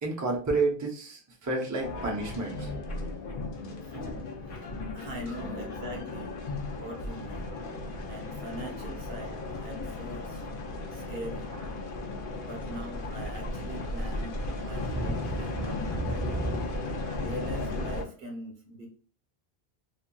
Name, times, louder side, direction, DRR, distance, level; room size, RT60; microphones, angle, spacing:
voice 1, 0.0-2.7 14.9-16.7, right 3 dB, 20° right, -1 dB, 0.6 m, -31 dB
sound 1, 1.8-18.0, left 2 dB, 60° left, 0.8 m, -35 dB
voice 2, 3.8-4.2 4.5-6.4 6.7-7.6 8.1-10.4 10.9-11.5 12.5-16.5 17.0-18.9, right 1 dB, 70° right, 0 dB, 1.0 m, -42 dB
2.8 x 2.6 x 2.2 m, 0.41 s
omnidirectional pair, 1.0 m